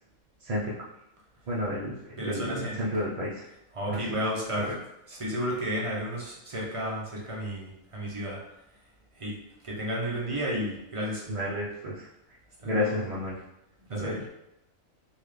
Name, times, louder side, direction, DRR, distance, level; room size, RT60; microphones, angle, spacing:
voice 1, 0.4-0.7 1.5-3.4 3.9-4.0 4.7-4.8 11.3-12.1 12.6-13.4 13.9-14.2, left 1 dB, 55° right, -5 dB, 0.4 m, -31 dB
voice 2, 2.2-3.0 3.7-4.7 5.1-8.4 9.2-9.4 9.6-11.2 12.6-13.0 13.9-14.2, equal, 30° right, -4 dB, 0.7 m, -32 dB
4.0 x 2.4 x 3.2 m, 0.84 s
omnidirectional pair, 1.4 m